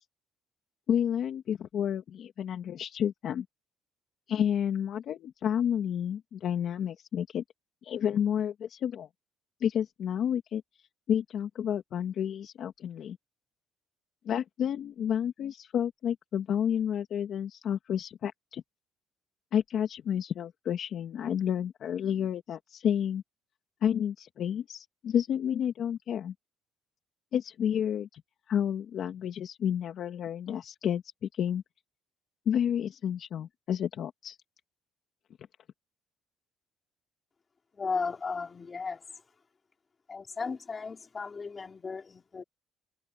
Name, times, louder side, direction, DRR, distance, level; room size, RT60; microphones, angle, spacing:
voice 1, 0.9-3.5 4.3-7.4 7.8-9.1 9.6-10.6 11.1-13.2 14.2-18.6 19.5-23.2 23.8-26.3 27.3-28.2 28.5-31.6 32.5-34.4, left 9 dB, 50° left, 2.2 m, -30 dB
voice 2, 37.8-39.0 40.1-42.4, left 4 dB, 25° left, 5.2 m, -35 dB
cardioid pair, 130°, 0 cm